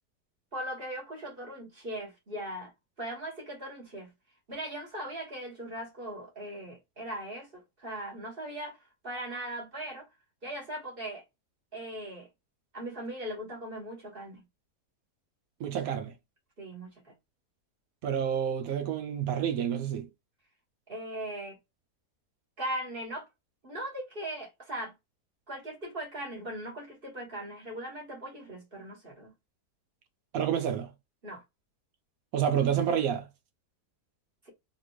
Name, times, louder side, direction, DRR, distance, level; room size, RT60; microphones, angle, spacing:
voice 1, 0.5-2.7 3.0-4.1 4.5-10.1 10.4-11.2 11.7-12.3 12.7-14.4 16.6-17.1 20.9-21.6 22.6-23.3 23.6-24.9 25.5-29.3 31.2-31.4, right 1 dB, 35° right, 1.5 m, -39 dB
voice 2, 15.6-16.1 18.0-20.1 30.3-30.9 32.3-33.3, right 8 dB, 70° right, 0.9 m, -29 dB
4.1 x 2.4 x 3.0 m
omnidirectional pair, 1.7 m